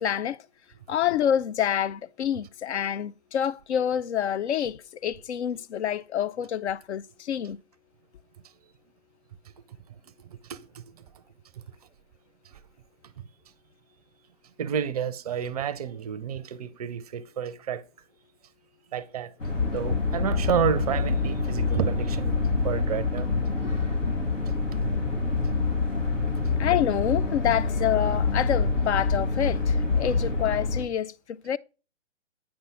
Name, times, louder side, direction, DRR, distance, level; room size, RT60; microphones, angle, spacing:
voice 1, 0.0-0.4 0.9-7.6 23.6-23.7 26.6-31.6, left 9 dB, 65° left, 0.5 m, -27 dB
voice 2, 10.3-10.8 12.5-12.6 14.6-17.8 18.9-19.3 19.7-23.3 30.0-30.2, right 8 dB, 35° right, 0.5 m, -30 dB
sound 1, 19.4-30.8, left 4 dB, 85° left, 2.4 m, -26 dB
8.7 x 5.5 x 3.4 m
hypercardioid pair, 140°, 36 cm